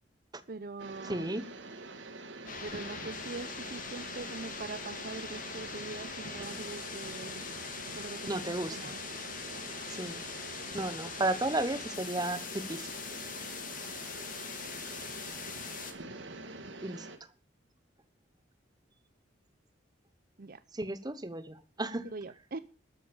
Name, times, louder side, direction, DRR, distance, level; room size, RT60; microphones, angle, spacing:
voice 1, 0.5-1.3 2.6-7.5 8.0-9.0 9.5-9.7 20.4-20.6 22.0-22.6, right 3 dB, 50° right, 14 dB, 0.6 m, -43 dB
sound 1, 0.8-17.2, right 2 dB, 75° right, 2.1 m, -46 dB
voice 2, 1.0-1.5 8.3-8.9 9.9-10.2 10.7-12.9 16.8-17.1 20.7-22.1, right 2 dB, 20° right, 13 dB, 1.0 m, -34 dB
sound 2, 2.5-15.9, left 6 dB, 45° left, 2.4 m, -42 dB
13.0 x 8.7 x 7.1 m, 0.36 s
head